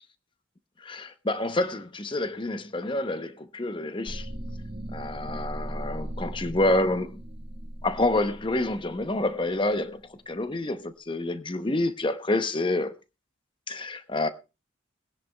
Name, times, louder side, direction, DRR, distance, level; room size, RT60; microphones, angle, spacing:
voice 1, 0.8-4.3 4.9-7.2 7.8-10.0 10.3-12.9 13.7-14.3, left 2 dB, 25° left, 0.7 m, -28 dB
sound 1, 4.1-10.1, right 1 dB, 45° right, 3.6 m, -38 dB
21.5 x 10.0 x 2.2 m
head